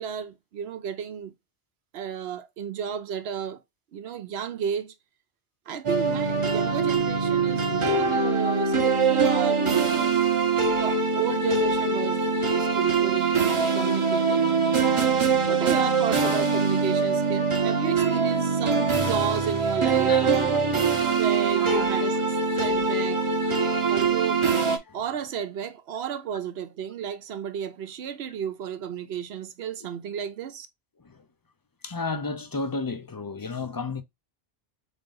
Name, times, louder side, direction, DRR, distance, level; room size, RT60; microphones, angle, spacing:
voice 1, 0.0-1.3 1.9-3.6 3.9-4.9 5.7-10.1 10.8-14.6 15.5-20.6 21.1-22.2 22.6-23.2 23.9-24.4 24.9-30.7, right 8 dB, 80° right, 0.9 m, -33 dB
sound 1, 5.8-24.8, right 5 dB, 35° right, 0.7 m, -23 dB
voice 2, 20.1-20.4 20.9-21.2 21.6-21.9 23.6-23.9 24.9-25.0 31.0-31.2 31.8-34.0, left 3 dB, 35° left, 0.3 m, -33 dB
3.7 x 3.6 x 3.8 m
omnidirectional pair, 1.1 m